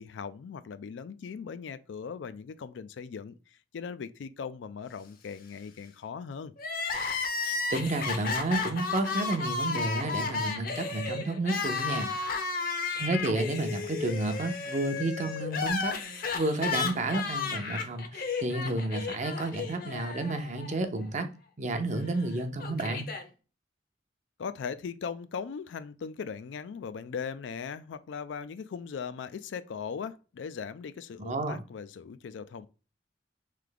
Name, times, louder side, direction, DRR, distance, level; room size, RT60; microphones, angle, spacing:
voice 1, 0.0-6.5 24.4-32.7, left 6 dB, 85° left, 0.4 m, -39 dB
Crying sobbing, 6.6-20.7 21.0-21.1 22.1-23.2, left 4 dB, 50° left, 0.7 m, -33 dB
voice 2, 7.4-12.1 13.0-15.9 16.3-21.3 21.6-23.1 31.2-31.6, right 2 dB, 40° right, 0.6 m, -31 dB
3.3 x 3.2 x 3.8 m
head